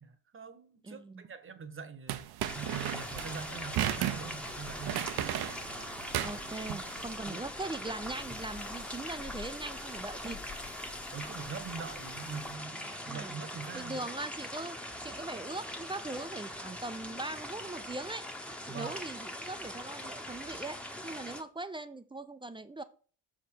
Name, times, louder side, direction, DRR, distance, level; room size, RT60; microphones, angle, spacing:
voice 1, 0.0-2.3 2.5-5.3 7.2-7.5 11.1-14.0 18.7-19.0, right 6 dB, 30° right, 1.0 m, -43 dB
voice 2, 0.8-1.2 6.2-10.4 13.1-13.4 13.7-18.3 18.6-22.8, right 2 dB, 15° right, 0.4 m, -40 dB
sound 1, 2.1-7.1, right 12 dB, 70° right, 0.8 m, -35 dB
sound 2, 2.5-21.4, left 1 dB, 5° left, 0.9 m, -42 dB
sound 3, 2.7-12.6, left 5 dB, 30° left, 1.1 m, -52 dB
6.4 x 5.1 x 6.1 m
cardioid pair, 120°, 39 cm